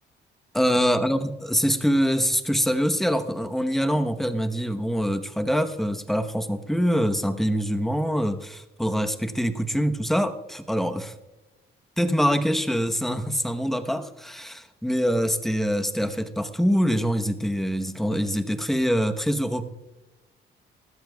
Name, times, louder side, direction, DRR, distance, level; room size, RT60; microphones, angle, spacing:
voice 1, 0.5-11.1 12.0-19.6, equal, ahead, 6 dB, 1.0 m, -24 dB
21.0 x 14.0 x 2.3 m, 1.0 s
cardioid pair, 90°, 20 cm